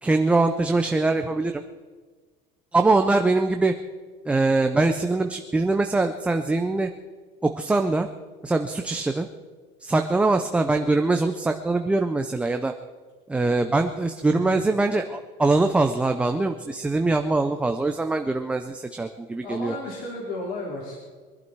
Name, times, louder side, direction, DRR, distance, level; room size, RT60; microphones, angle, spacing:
voice 1, 0.0-1.6 2.7-3.7 4.3-6.9 7.4-8.1 8.4-9.3 9.8-12.7 13.3-19.8, right 3 dB, 5° right, 6 dB, 0.5 m, -23 dB
voice 2, 14.3-14.6 19.4-21.0, left 2 dB, 55° left, -3 dB, 4.1 m, -33 dB
23.5 x 12.0 x 4.6 m, 1.4 s
cardioid pair, 180°, 18 cm